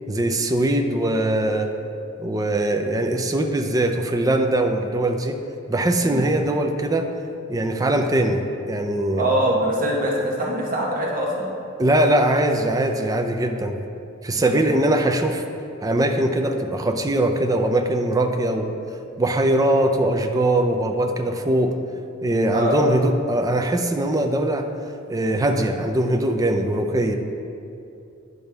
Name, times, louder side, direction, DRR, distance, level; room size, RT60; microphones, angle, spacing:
voice 1, 0.1-1.7 2.2-5.4 5.7-7.1 7.5-9.3 11.8-13.8 14.2-15.4 15.8-18.7 19.2-21.7 22.2-24.7 25.1-27.2, right 1 dB, 15° right, 4 dB, 0.5 m, -21 dB
voice 2, 9.2-11.5 14.3-14.8 22.5-22.8, right 1 dB, 45° right, -3 dB, 1.1 m, -24 dB
10.5 x 5.4 x 3.4 m, 2.6 s
head